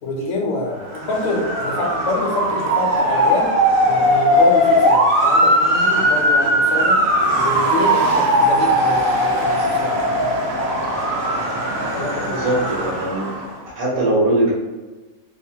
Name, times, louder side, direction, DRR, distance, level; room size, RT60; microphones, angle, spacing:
voice 1, 0.0-3.5 3.9-7.0 7.4-9.9 11.9-12.4, left 2 dB, 65° left, 0 dB, 0.9 m, -26 dB
Motor vehicle (road) / Siren, 0.8-13.5, equal, 60° right, 0.7 m, -18 dB
voice 2, 12.2-13.3 13.6-14.5, right 1 dB, 85° right, -5 dB, 1.3 m, -20 dB
3.0 x 2.1 x 2.7 m, 1.2 s
omnidirectional pair, 1.4 m